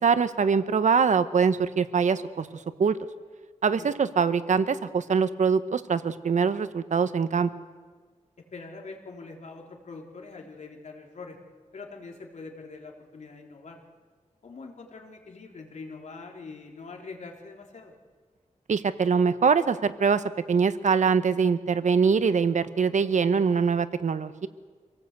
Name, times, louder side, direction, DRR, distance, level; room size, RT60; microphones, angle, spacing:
voice 1, 0.0-2.5 2.8-3.0 3.6-7.5 18.7-24.5, right 6 dB, 75° right, 12 dB, 1.0 m, -23 dB
voice 2, 8.4-11.4 11.7-13.8 14.4-17.9, left 4 dB, 70° left, 2 dB, 3.4 m, -43 dB
26.0 x 18.0 x 8.2 m, 1.5 s
wide cardioid pair, 95°, 13 cm